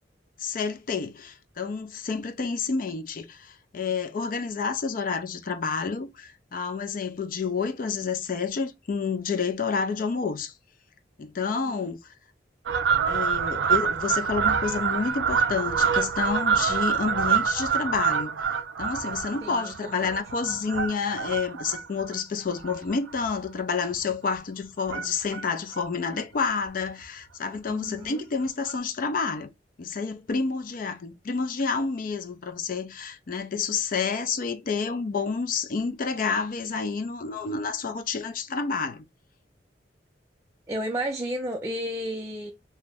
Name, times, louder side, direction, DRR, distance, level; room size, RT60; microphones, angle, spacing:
voice 1, 0.4-10.5 11.2-12.1 13.1-18.5 18.8-29.5 29.8-39.0, left 5 dB, 50° left, 0.4 m, -29 dB
voice 2, 11.5-11.9 19.4-20.1 27.7-28.2 40.7-42.5, equal, 15° right, 0.4 m, -33 dB
Fowl, 12.7-23.5 23.9-24.1 24.9-25.4 25.7-25.8 26.0-26.1 26.4-26.5 26.9-27.0 28.0-28.1 28.7-28.8, right 6 dB, 80° right, 0.4 m, -26 dB
2.8 x 2.0 x 3.4 m
head